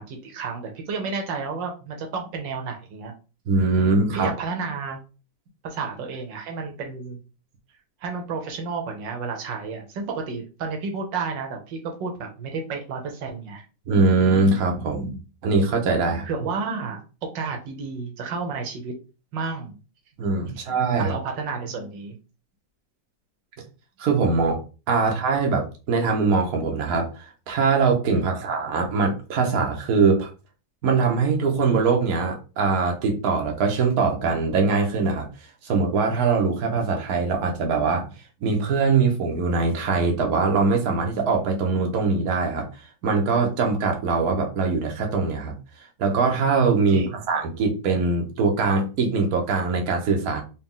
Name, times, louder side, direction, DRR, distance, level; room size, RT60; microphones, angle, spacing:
voice 1, 0.0-3.1 3.8-5.0 5.6-7.2 8.0-13.6 16.3-18.9 19.3-19.7 20.5-22.1 28.1-28.3 46.9-47.2, right 4 dB, 80° right, 4 dB, 1.5 m, -31 dB
voice 2, 3.5-4.3 13.9-16.3 20.2-21.2 24.0-24.6 24.9-30.3 30.8-35.3 35.6-38.1 38.4-42.7 43.0-45.5 46.0-50.4, right 4 dB, 60° right, 1 dB, 1.3 m, -22 dB
4.1 x 2.3 x 3.7 m, 0.33 s
omnidirectional pair, 2.0 m